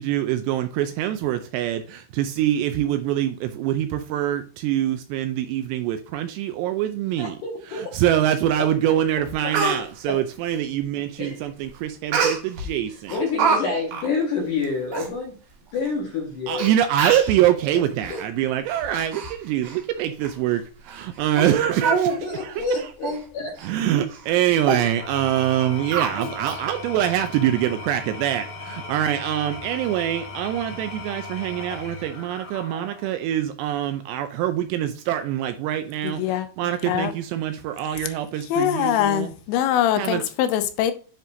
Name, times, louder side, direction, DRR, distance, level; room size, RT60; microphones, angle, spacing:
voice 1, 0.0-7.4 7.7-13.2 16.5-22.9 23.6-39.3 39.9-40.2, right 11 dB, 85° right, 2.5 m, -24 dB
voice 2, 7.2-7.9 10.1-10.2 11.2-11.4 13.1-15.4 15.7-16.7 22.2-23.5, left 4 dB, 65° left, 2.1 m, -28 dB
Speech, 8.8-8.9 9.3-9.8 12.1-12.7 13.1-13.6 13.9-14.1 14.6-14.7 14.9-15.1 15.9-16.0 16.6-16.7 17.0-17.4 18.0-18.2 18.7-19.3 19.6-19.8 20.2-20.3 20.9-21.0 21.4-21.5 21.8-22.2 22.5-22.6 23.0-23.2 23.6-23.7 24.1-24.3 24.6-24.9 25.9-26.6 27.0-27.1, right 5 dB, 65° right, 2.3 m, -25 dB
Engine / Tools, 24.9-33.2, left 3 dB, 35° left, 2.2 m, -37 dB
voice 3, 36.1-36.5 36.9-37.1 38.5-40.9, left 11 dB, 80° left, 2.9 m, -22 dB
10.0 x 3.7 x 2.7 m
omnidirectional pair, 5.4 m